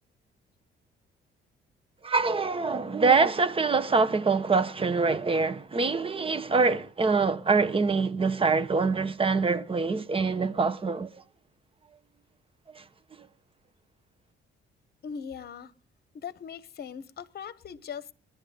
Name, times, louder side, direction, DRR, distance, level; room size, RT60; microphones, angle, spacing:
voice 1, 2.0-11.2 12.7-12.8 13.2-13.3, right 4 dB, 25° right, 1.0 m, -25 dB
voice 2, 15.0-15.7 16.1-18.1, left 7 dB, 55° left, 1.1 m, -40 dB
20.5 x 11.5 x 3.9 m
cardioid pair, 90°, 20 cm